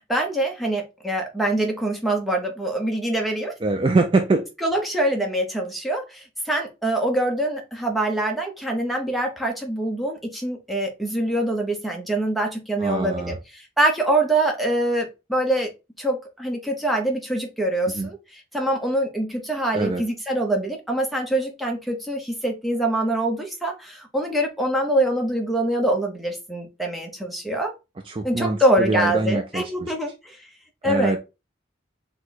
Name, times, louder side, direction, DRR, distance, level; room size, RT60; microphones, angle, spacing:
voice 1, 0.0-3.5 4.6-15.7 16.0-18.2 18.5-27.7 28.2-30.4 30.8-31.2, right 1 dB, ahead, 0.8 m, -24 dB
voice 2, 3.6-4.4 12.8-13.4 17.9-18.1 19.7-20.0 28.0-29.9 30.8-31.2, right 3 dB, 25° right, 0.3 m, -23 dB
4.8 x 2.2 x 4.0 m
head